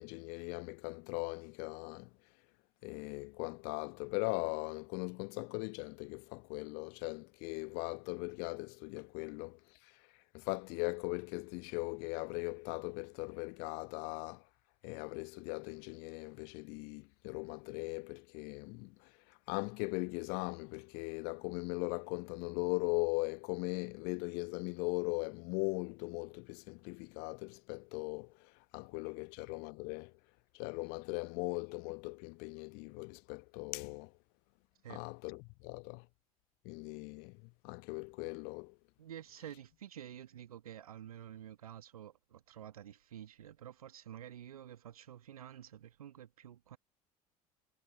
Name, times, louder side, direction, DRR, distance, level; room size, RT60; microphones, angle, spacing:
voice 1, 0.0-2.1 2.8-9.9 10.3-14.4 14.8-30.1 30.5-34.1 34.9-36.0 36.6-38.7, left 36 dB, 55° left, 1.0 m, -39 dB
voice 2, 39.0-46.8, right 10 dB, 75° right, 1.5 m, -50 dB
figure-of-eight pair, 65°, 19 cm